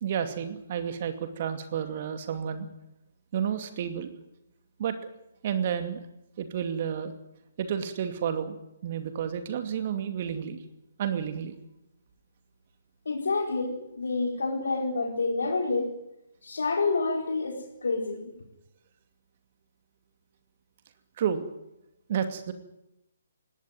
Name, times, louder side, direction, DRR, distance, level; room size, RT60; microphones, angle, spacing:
voice 1, 0.0-2.7 3.3-4.1 4.8-5.0 5.4-6.0 6.4-7.1 7.6-8.6 8.8-10.6 11.0-11.5 21.2-21.4 22.1-22.5, right 8 dB, 40° right, 8 dB, 2.5 m, -30 dB
voice 2, 13.1-15.9 16.4-18.3, left 3 dB, 65° left, 2 dB, 4.4 m, -28 dB
20.5 x 17.5 x 9.2 m, 0.87 s
figure-of-eight pair, 135°, 0 cm